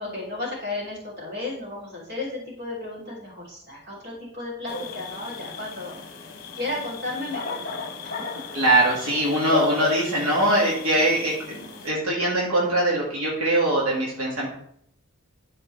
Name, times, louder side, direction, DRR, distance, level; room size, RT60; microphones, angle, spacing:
voice 1, 0.0-6.0 6.5-8.4, left 2 dB, 50° right, -4 dB, 3.3 m, -34 dB
sound 1, 4.7-11.9, left 5 dB, 45° left, 1.1 m, -35 dB
voice 2, 8.5-14.5, right 1 dB, 80° right, -5 dB, 2.1 m, -22 dB
12.0 x 4.6 x 3.3 m, 0.69 s
head